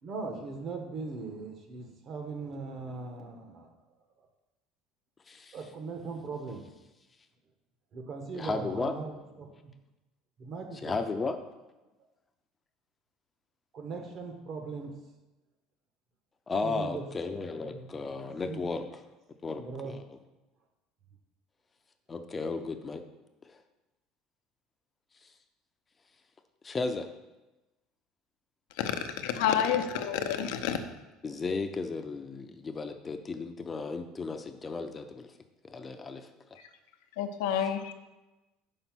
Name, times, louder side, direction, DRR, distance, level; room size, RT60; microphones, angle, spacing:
voice 1, 0.0-3.7 5.5-6.7 7.9-9.7 10.4-10.9 13.7-14.9 16.6-17.0 17.6-18.8 19.5-19.9, right 4 dB, 45° right, 4 dB, 1.2 m, -40 dB
voice 2, 8.3-8.9 10.8-11.4 16.5-18.8 19.4-20.0 22.1-23.0 23.4-23.6 26.6-27.1 31.2-35.3 35.6-36.3, left 3 dB, 20° left, 7 dB, 0.6 m, -34 dB
voice 3, 29.2-30.8 37.2-37.9, left 9 dB, 85° left, 7 dB, 0.7 m, -29 dB
5.5 x 4.9 x 6.1 m, 1.1 s
cardioid pair, 130°, 0 cm